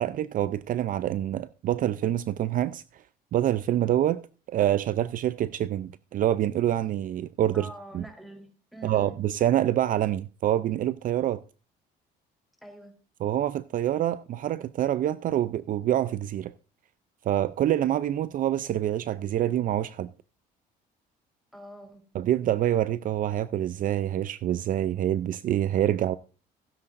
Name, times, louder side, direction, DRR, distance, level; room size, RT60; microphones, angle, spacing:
voice 1, 0.0-2.8 3.3-4.2 4.5-7.7 7.9-8.0 8.8-11.4 13.2-16.5 17.3-20.1 22.1-26.2, right 12 dB, 55° right, 0.5 m, -26 dB
voice 2, 7.5-9.2 12.6-12.9 21.5-22.0, right 1 dB, ahead, 3.9 m, -45 dB
16.0 x 9.9 x 2.6 m
cardioid pair, 110°, 17 cm